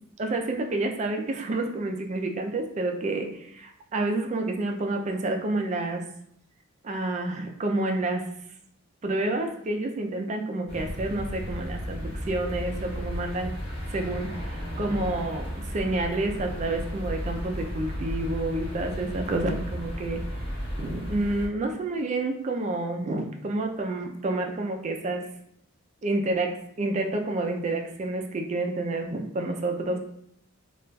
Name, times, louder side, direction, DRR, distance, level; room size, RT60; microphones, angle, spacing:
voice 1, 0.0-6.0 6.8-8.3 9.0-13.5 13.9-20.2 20.8-25.3 26.0-30.0, right 2 dB, 30° right, 4 dB, 0.3 m, -29 dB
sound 1, 10.7-21.5, equal, 30° left, 0.8 m, -34 dB
3.8 x 2.3 x 2.2 m, 0.72 s
head